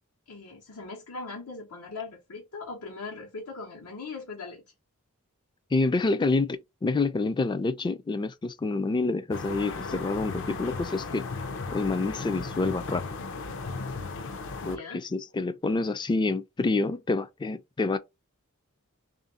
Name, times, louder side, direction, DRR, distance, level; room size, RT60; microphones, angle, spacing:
voice 1, 0.3-4.6 14.6-15.0, left 4 dB, 90° left, 1.0 m, -40 dB
voice 2, 5.7-11.3 11.7-13.0 14.6-18.0, left 3 dB, 20° left, 0.3 m, -27 dB
sound 1, 9.3-14.8, left 3 dB, 60° left, 0.6 m, -36 dB
3.4 x 2.5 x 4.0 m
head